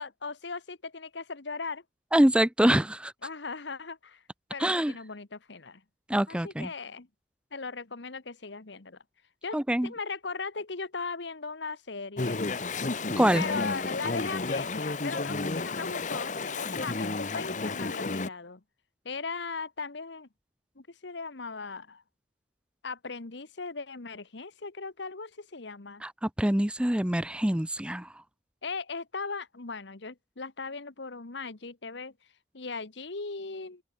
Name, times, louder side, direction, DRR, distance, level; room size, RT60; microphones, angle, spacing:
voice 1, 0.0-1.8 3.2-4.2 4.5-5.8 6.3-7.1 7.5-9.0 9.4-9.6 9.8-12.4 13.3-18.6 19.0-20.3 20.8-22.0 22.8-26.0 28.6-32.1 32.5-33.8, left 4 dB, 65° left, 1.2 m, -38 dB
voice 2, 2.1-3.1 4.6-4.9 6.1-6.7 9.5-9.9 13.2-13.4 26.0-28.1, right 1 dB, 5° right, 0.5 m, -25 dB
Chatter / Stream, 12.2-18.3, left 3 dB, 40° left, 1.0 m, -32 dB
head